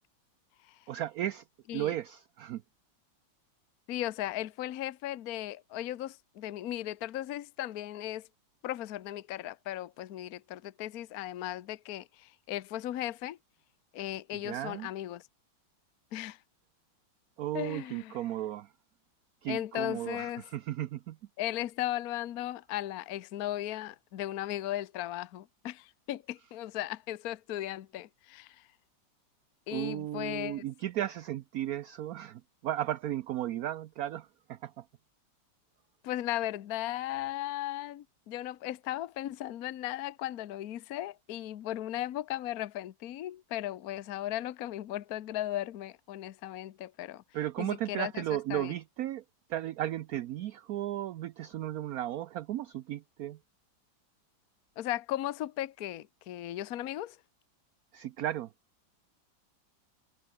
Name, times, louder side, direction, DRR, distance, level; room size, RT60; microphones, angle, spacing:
voice 1, 0.9-1.4 1.7-2.6 14.4-14.9 17.4-18.7 19.4-21.2 29.7-34.9 47.3-49.2 49.5-53.4 57.9-58.5, right 12 dB, 70° right, 0.9 m, -35 dB
voice 2, 3.9-8.3 8.6-13.4 13.9-15.3 16.1-16.4 17.5-18.2 19.5-20.4 21.4-28.7 29.7-30.6 36.0-47.2 47.6-48.2 48.5-48.7 54.8-57.2, left 13 dB, 60° left, 1.2 m, -36 dB
omnidirectional pair, 2.1 m